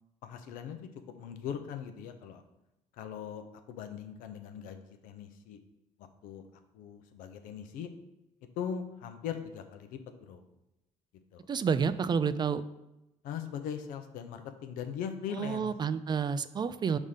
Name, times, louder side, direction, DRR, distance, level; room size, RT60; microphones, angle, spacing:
voice 1, 0.2-0.8 1.2-2.4 3.0-5.6 6.2-6.4 6.7-7.9 8.6-10.4 11.3-11.5 13.2-15.7, left 8 dB, 85° left, 7 dB, 0.6 m, -40 dB
voice 2, 11.5-12.6 15.3-17.0, right 6 dB, 30° right, 14 dB, 0.3 m, -29 dB
5.0 x 3.6 x 5.6 m, 0.92 s
cardioid pair, 90°, 14 cm